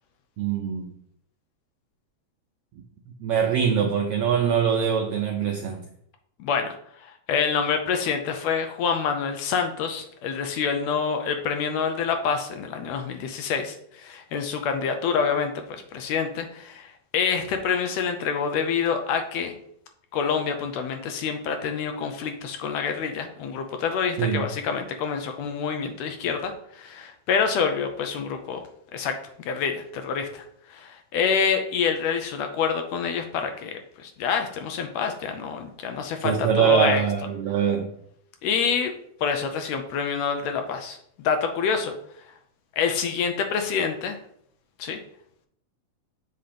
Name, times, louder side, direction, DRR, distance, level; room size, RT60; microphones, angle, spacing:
voice 1, 0.4-0.9 3.2-5.8 24.2-24.4 36.2-37.9, right 7 dB, 85° right, 2 dB, 1.3 m, -23 dB
voice 2, 6.4-6.8 7.3-19.5 20.1-28.6 28.9-29.2 29.5-30.4 30.7-37.1 38.4-38.9 39.2-41.9 42.8-44.2 44.8-45.0, left 6 dB, 75° left, 5 dB, 1.8 m, -27 dB
7.6 x 2.9 x 5.0 m, 0.68 s
omnidirectional pair, 3.3 m